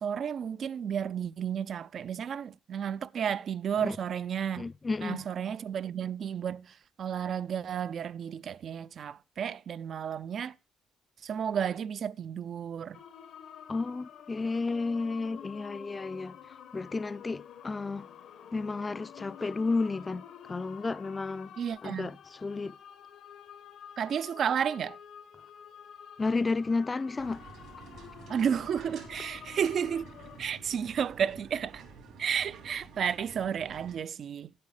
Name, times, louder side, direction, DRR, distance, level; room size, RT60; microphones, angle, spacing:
voice 1, 0.0-4.7 5.0-10.5 11.2-13.0 21.6-22.1 24.0-25.0 28.3-31.8 32.2-34.5, right 8 dB, 60° right, 0.4 m, -32 dB
voice 2, 4.6-5.2 13.7-16.4 16.7-18.1 18.5-21.5 21.8-22.8 26.2-27.4, left 3 dB, 25° left, 0.4 m, -32 dB
sound 1, 12.9-30.4, left 8 dB, 75° left, 1.0 m, -49 dB
sound 2, 27.2-34.0, right 5 dB, 80° right, 3.3 m, -50 dB
9.6 x 8.5 x 4.9 m
cardioid pair, 90°, 0 cm